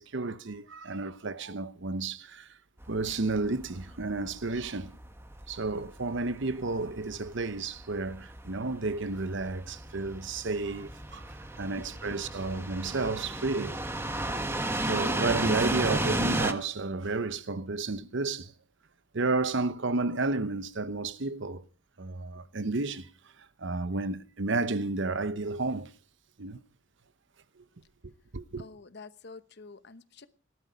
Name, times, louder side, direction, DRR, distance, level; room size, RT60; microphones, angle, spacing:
voice 1, 0.0-2.5 2.9-5.0 5.5-11.2 11.6-13.8 14.9-18.5 19.1-21.6 22.0-23.1 23.6-25.9 26.4-26.6 28.3-28.6, right 3 dB, 60° right, 0.9 m, -32 dB
sound 1, 2.8-16.5, right 1 dB, 10° right, 1.3 m, -34 dB
voice 2, 11.8-12.2 12.6-13.0 28.6-30.3, left 3 dB, 55° left, 1.0 m, -48 dB
18.0 x 12.0 x 5.1 m
head